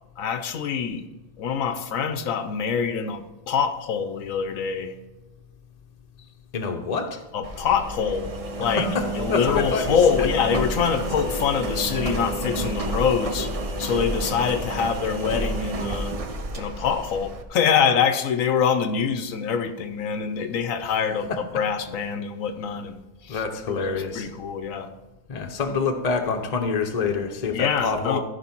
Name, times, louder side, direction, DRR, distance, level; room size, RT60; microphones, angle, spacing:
voice 1, 0.2-1.0 1.4-4.9 7.3-8.3 8.6-8.9 9.1-13.5 13.8-16.1 16.5-23.0 23.2-24.9 27.5-28.2, left 7 dB, 90° left, 1.2 m, -25 dB
voice 2, 6.5-7.2 8.7-10.3 20.8-20.9 21.3-21.4 23.3-24.3 25.3-28.2, left 4 dB, 35° left, 0.9 m, -27 dB
Engine, 7.4-17.4, right 1 dB, 35° right, 0.6 m, -30 dB
14.5 x 5.2 x 4.4 m
omnidirectional pair, 1.4 m